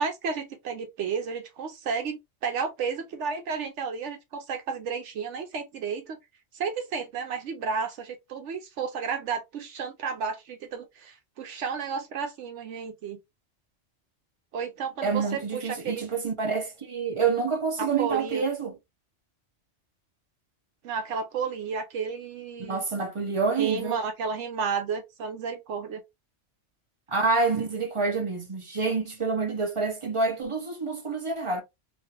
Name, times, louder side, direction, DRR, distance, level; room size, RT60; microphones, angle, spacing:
voice 1, 0.0-6.2 6.5-13.2 14.5-16.0 17.8-18.4 20.8-22.8 23.6-26.0, right 5 dB, 75° right, 0.9 m, -32 dB
voice 2, 15.0-18.7 22.6-24.0 27.1-31.6, right 4 dB, 30° right, 0.7 m, -27 dB
3.1 x 2.4 x 2.8 m
omnidirectional pair, 1.2 m